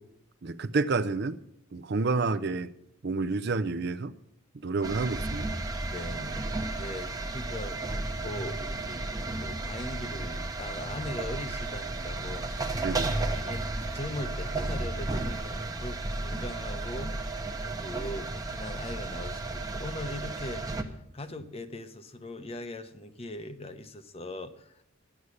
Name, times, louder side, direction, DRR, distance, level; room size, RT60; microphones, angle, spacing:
voice 1, 0.4-1.4 1.7-2.7 3.0-4.1 4.5-5.5 12.8-13.2, right 3 dB, 50° right, 12 dB, 0.5 m, -29 dB
sound 1, 4.8-20.8, right 2 dB, 20° right, 0.9 m, -33 dB
voice 2, 5.8-24.8, left 1 dB, 30° left, 10 dB, 0.8 m, -41 dB
11.0 x 8.1 x 8.4 m, 0.77 s
head